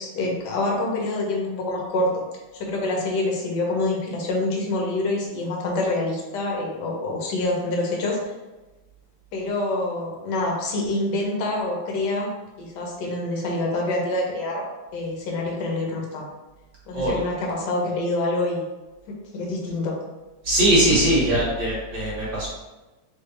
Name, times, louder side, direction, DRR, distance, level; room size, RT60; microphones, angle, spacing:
voice 1, 0.0-2.2 2.5-8.2 9.3-12.3 12.6-14.6 14.9-16.3 16.9-18.7 19.1-20.0, left 2 dB, 65° left, -1 dB, 1.4 m, -26 dB
voice 2, 20.4-22.5, right 1 dB, 50° right, -6 dB, 1.5 m, -20 dB
3.7 x 3.5 x 3.3 m, 1.1 s
omnidirectional pair, 2.2 m